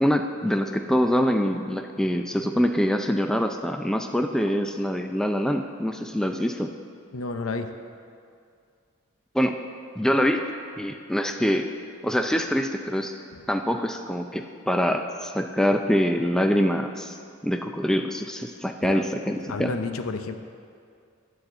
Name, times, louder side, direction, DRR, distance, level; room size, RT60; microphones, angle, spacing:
voice 1, 0.0-6.7 9.3-9.6 10.0-10.4 10.8-11.7 12.0-13.1 13.5-17.2 17.4-19.7, equal, 5° left, 5 dB, 0.4 m, -24 dB
voice 2, 7.1-7.7 13.3-13.4 18.8-19.0 19.5-20.3, left 3 dB, 80° left, 8 dB, 0.6 m, -31 dB
10.5 x 4.2 x 7.7 m, 2.3 s
head